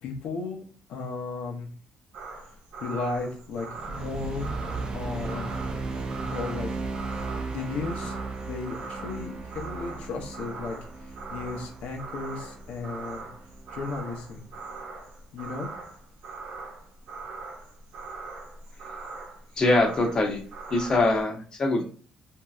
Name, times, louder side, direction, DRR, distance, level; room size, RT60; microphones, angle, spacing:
voice 1, 0.0-0.6 0.9-1.7 2.8-4.5 4.9-5.8 6.3-6.7 7.5-8.2 8.4-10.8 11.0-13.3 13.7-14.4 15.3-15.7, left 4 dB, 80° left, 1 dB, 0.8 m, -34 dB
sound 1, 2.1-21.2, right 3 dB, 80° right, 0.8 m, -41 dB
sound 2, 3.7-14.2, right 3 dB, 40° right, 0.5 m, -36 dB
voice 2, 19.6-20.4 20.7-21.8, left 2 dB, 35° left, 2 dB, 0.8 m, -23 dB
3.0 x 2.7 x 2.3 m, 0.42 s
cardioid pair, 110°, 2 cm